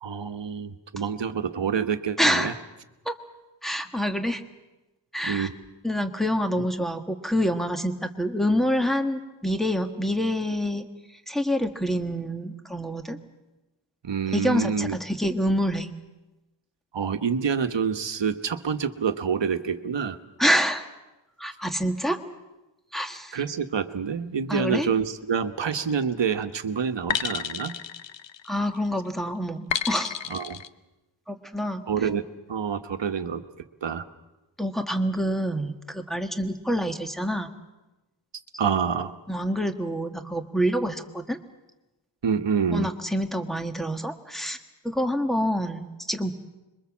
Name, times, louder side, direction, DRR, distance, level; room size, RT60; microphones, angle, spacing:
voice 1, 0.0-2.5 5.2-5.6 6.6-6.7 14.0-15.0 16.9-20.2 23.3-27.7 30.3-30.6 31.9-32.2 32.5-33.4 33.8-34.0 38.6-39.1 42.2-42.9, right 6 dB, 70° right, 8 dB, 1.4 m, -27 dB
voice 2, 2.2-2.5 3.0-3.1 3.6-4.4 5.1-5.5 5.8-10.9 11.3-13.2 14.3-15.9 20.4-20.8 21.4-22.2 22.9-23.4 24.5-24.9 28.5-30.1 31.3-31.8 34.6-37.5 39.3-41.4 42.7-44.6 44.8-46.3, equal, ahead, 6 dB, 1.5 m, -26 dB
sound 1, 25.6-26.0 27.1-28.8 29.7-30.7, left 8 dB, 70° left, 0.9 m, -31 dB
26.0 x 22.5 x 7.4 m, 1.0 s
wide cardioid pair, 140°, 46 cm